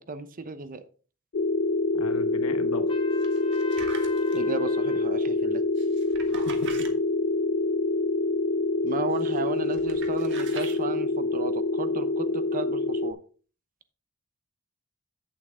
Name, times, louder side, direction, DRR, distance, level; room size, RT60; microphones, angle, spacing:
voice 1, 0.1-0.8 4.3-5.6 8.8-13.2, right 3 dB, 40° right, 11 dB, 0.8 m, -35 dB
sound 1, 1.3-13.1, left 2 dB, 55° left, 0.5 m, -26 dB
voice 2, 2.0-2.9 6.3-6.7, left 2 dB, 75° left, 9 dB, 1.2 m, -37 dB
Trumpet, 2.9-5.1, left 3 dB, 25° left, 1.1 m, -41 dB
sound 2, 3.2-4.4 5.8-6.9 9.1-9.4 9.7-10.8, right 5 dB, 55° right, 1.6 m, -42 dB
8.8 x 7.8 x 3.7 m, 0.39 s
head